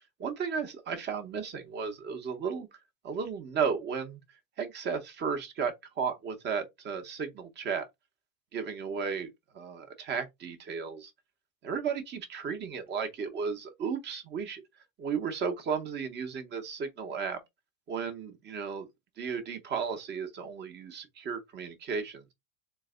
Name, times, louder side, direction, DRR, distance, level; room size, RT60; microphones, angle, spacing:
voice 1, 0.2-2.7 3.0-4.2 4.6-7.9 8.5-11.1 11.6-14.6 15.0-17.4 17.9-18.9 19.2-22.2, right 6 dB, 25° right, 0.9 m, -34 dB
3.9 x 2.2 x 3.6 m
supercardioid pair, 150°, 42 cm